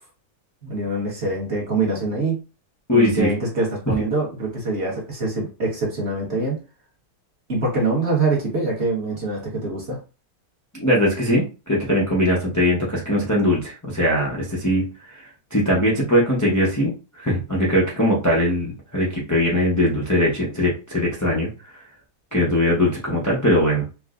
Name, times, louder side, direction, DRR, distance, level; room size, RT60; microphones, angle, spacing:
voice 1, 0.6-2.4 2.9-6.6 7.5-10.0, right 3 dB, 45° right, -3 dB, 1.3 m, -24 dB
voice 2, 2.9-3.3 3.9-4.0 10.7-14.9 15.5-21.5 22.3-23.8, left 1 dB, 25° left, -5 dB, 0.4 m, -20 dB
4.5 x 2.1 x 2.4 m, 0.32 s
omnidirectional pair, 1.9 m